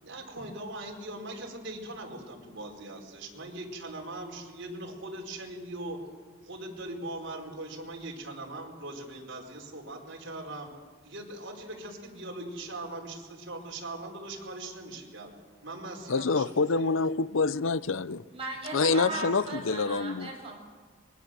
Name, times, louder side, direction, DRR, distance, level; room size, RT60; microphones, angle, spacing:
voice 1, 0.0-6.0 6.4-10.7 11.0-15.3 15.6-16.9 18.8-20.1, right 2 dB, 60° right, 4.8 m, -40 dB
voice 2, 16.1-18.2 18.7-20.3, left 4 dB, 70° left, 0.6 m, -26 dB
voice 3, 18.3-20.6, right 2 dB, 30° right, 7.2 m, -37 dB
24.5 x 21.5 x 7.7 m
head